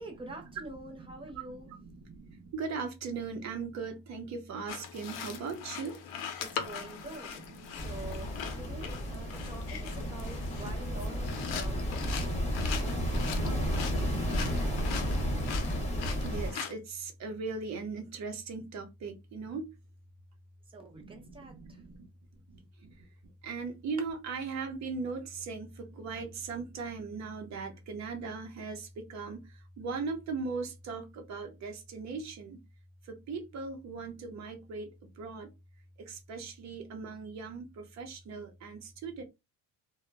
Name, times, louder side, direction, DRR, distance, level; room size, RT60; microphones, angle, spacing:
voice 1, 0.0-1.7 6.4-7.5 7.8-12.4 12.8-13.1 13.3-14.8 20.7-21.8, right 2 dB, 15° right, 0.3 m, -46 dB
voice 2, 1.0-6.0 6.6-7.0 7.3-8.6 8.9-15.2 16.2-19.7 21.0-22.1 22.5-23.1 23.4-32.6 33.0-34.9 35.2-35.5 36.0-39.2, right 4 dB, 45° right, 0.7 m, -40 dB
sound 1, 4.7-16.7, left 8 dB, 80° left, 0.7 m, -41 dB
sound 2, 7.8-16.5, equal, 20° left, 0.8 m, -32 dB
2.2 x 2.0 x 3.2 m
cardioid pair, 155°, 38 cm